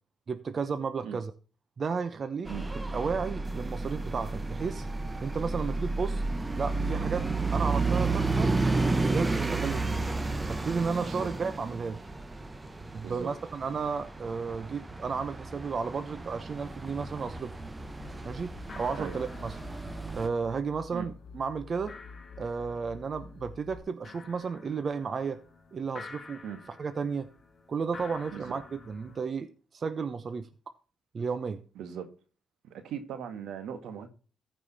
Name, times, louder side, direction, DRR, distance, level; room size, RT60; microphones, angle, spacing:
voice 1, 0.3-1.3 1.8-2.5 2.9-4.8 5.2-6.2 6.6-8.5 8.9-10.0 10.5-12.0 12.9-17.5 18.2-19.6 20.1-21.9 22.4-25.4 25.7-26.4 26.7-27.3 27.7-30.5 31.1-31.6, right 5 dB, 45° right, 0.9 m, -33 dB
sound 1, 2.4-20.3, right 3 dB, 20° right, 1.1 m, -32 dB
sound 2, 16.1-16.2 16.4-16.9 17.3-17.8 18.2-18.3 18.5-29.2, left 4 dB, 35° left, 2.4 m, -51 dB
sound 3, 17.8-23.8, left 4 dB, 60° left, 3.2 m, -48 dB
voice 2, 31.8-32.1 32.7-34.1, right 8 dB, 80° right, 1.8 m, -39 dB
14.5 x 5.5 x 4.2 m
cardioid pair, 90°, 0 cm